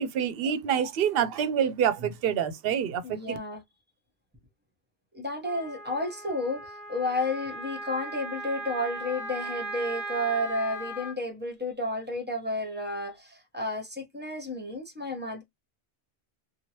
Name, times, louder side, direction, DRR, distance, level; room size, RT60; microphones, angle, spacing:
voice 1, 0.0-3.4, right 8 dB, 65° right, 0.7 m, -27 dB
voice 2, 3.0-3.6 5.1-15.4, left 1 dB, 10° right, 0.9 m, -32 dB
Wind instrument woodwind instrument, 5.4-11.1, right 1 dB, 50° left, 1.1 m, -38 dB
3.0 x 2.3 x 2.8 m
omnidirectional pair, 1.1 m